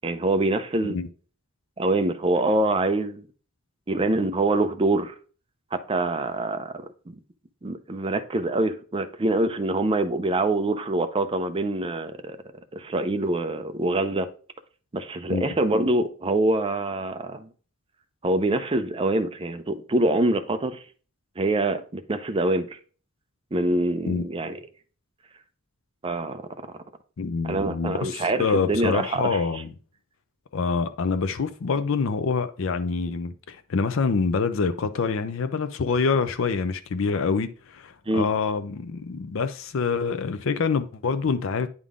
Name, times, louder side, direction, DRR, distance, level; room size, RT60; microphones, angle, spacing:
voice 1, 0.0-1.0 1.8-3.3 3.9-5.1 5.7-7.2 7.6-12.4 12.7-14.3 14.9-17.5 18.2-20.8 21.4-22.8 23.5-24.6 26.0-26.4 27.4-29.4 38.1-38.3, right 2 dB, 25° right, 0.5 m, -25 dB
voice 2, 27.2-29.7 30.5-41.7, left 5 dB, 65° left, 0.5 m, -26 dB
9.6 x 3.7 x 3.6 m
head